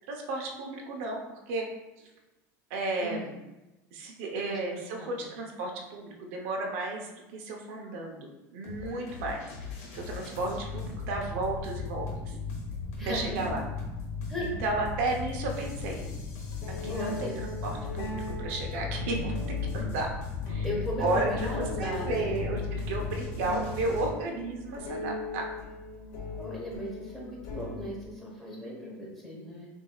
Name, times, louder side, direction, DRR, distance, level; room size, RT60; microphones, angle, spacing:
voice 1, 0.0-1.7 2.0-2.1 2.7-3.4 3.9-9.4 9.9-12.4 13.1-13.6 14.4-16.1 16.7-20.1 20.5-20.7 21.0-25.5, right 2 dB, 75° right, 1 dB, 0.7 m, -33 dB
sound 1, 8.6-24.1, left 4 dB, 85° left, 1.2 m, -37 dB
voice 2, 10.2-10.6 12.9-13.6 14.3-14.5 16.8-17.4 20.6-22.3 26.4-29.7, left 1 dB, 5° left, -5 dB, 1.0 m, -37 dB
sound 2, 12.3-12.4 14.0-14.1 15.8-16.0 16.5-28.1, left 4 dB, 65° left, 0.9 m, -38 dB
6.1 x 2.7 x 2.3 m, 1.0 s
cardioid pair, 160°, 7 cm